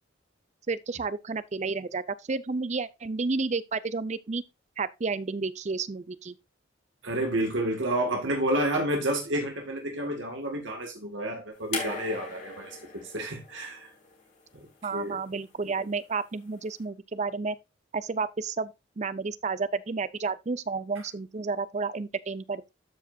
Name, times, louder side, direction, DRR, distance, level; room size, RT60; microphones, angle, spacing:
voice 1, 0.7-4.4 4.8-6.4 14.8-17.6 17.9-22.7, right 4 dB, 35° right, 0.5 m, -31 dB
voice 2, 7.0-13.9 14.5-15.2, right 1 dB, 85° right, 2.0 m, -30 dB
sound 1, 11.7-14.9 16.1-16.2, left 4 dB, 40° left, 2.9 m, -39 dB
13.0 x 5.0 x 2.7 m
head